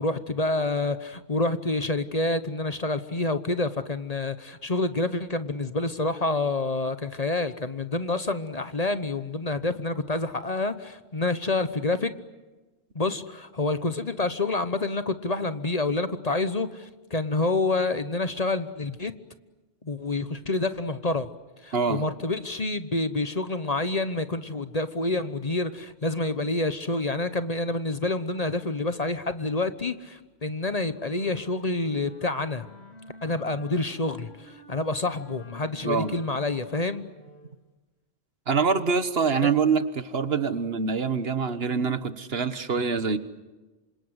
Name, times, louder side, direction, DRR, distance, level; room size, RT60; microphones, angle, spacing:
voice 1, 0.0-12.1 12.9-19.1 19.8-21.3 21.6-32.7 33.2-37.0, left 2 dB, 35° left, 11 dB, 1.1 m, -28 dB
voice 2, 21.7-22.1 35.8-36.1 38.5-43.2, right 5 dB, 65° right, 12 dB, 1.5 m, -25 dB
Wind instrument woodwind instrument, 30.9-37.6, left 1 dB, 75° left, 3.2 m, -50 dB
27.5 x 26.0 x 8.0 m, 1.2 s
omnidirectional pair, 1.1 m